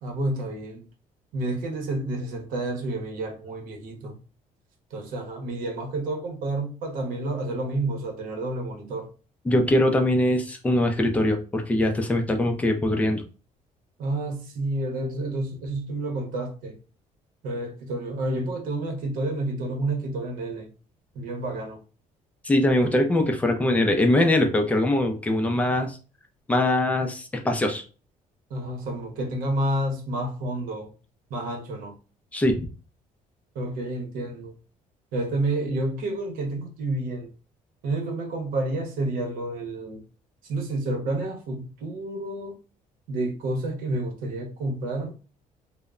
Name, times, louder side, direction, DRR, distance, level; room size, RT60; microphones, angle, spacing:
voice 1, 0.0-0.8 1.3-4.2 4.9-9.1 14.0-16.8 17.4-20.7 21.1-21.8 28.5-30.9 31.3-31.9 33.5-34.5 35.1-37.3 37.8-40.0 40.5-42.6 43.1-45.1, right 2 dB, 80° right, 0.8 m, -29 dB
voice 2, 9.5-13.2 22.4-26.0 26.5-27.8 32.3-32.7, left 1 dB, 10° left, 0.4 m, -22 dB
2.1 x 2.0 x 3.5 m
cardioid pair, 180°, 14 cm